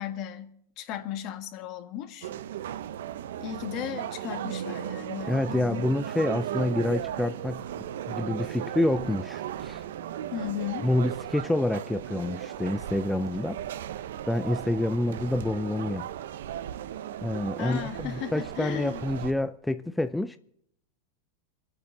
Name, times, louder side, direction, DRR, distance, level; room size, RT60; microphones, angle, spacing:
voice 1, 0.0-2.3 3.4-5.9 10.3-10.9 17.6-19.1, left 11 dB, 50° left, 1.7 m, -36 dB
sound 1, 2.2-19.3, right 11 dB, 80° right, 0.8 m, -36 dB
voice 2, 5.3-7.6 8.1-9.8 10.8-13.6 14.3-16.1 17.2-20.4, left 1 dB, 5° left, 0.5 m, -28 dB
25.5 x 8.8 x 5.8 m
hypercardioid pair, 120°, 0 cm